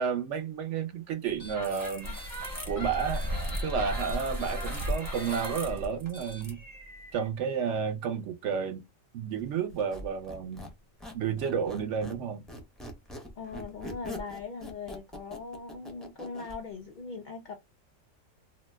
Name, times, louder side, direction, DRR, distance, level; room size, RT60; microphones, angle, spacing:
voice 1, 0.0-2.1 2.6-3.2 3.6-6.6 7.1-8.8 9.1-10.7 11.1-12.4, right 6 dB, 65° right, 0.9 m, -31 dB
sound 1, 1.4-7.3, equal, 20° right, 0.8 m, -35 dB
Squeak, 9.7-12.2 12.5-16.6, left 1 dB, ahead, 0.4 m, -43 dB
voice 2, 13.4-17.6, left 4 dB, 80° left, 0.4 m, -40 dB
2.8 x 2.1 x 3.2 m
omnidirectional pair, 1.4 m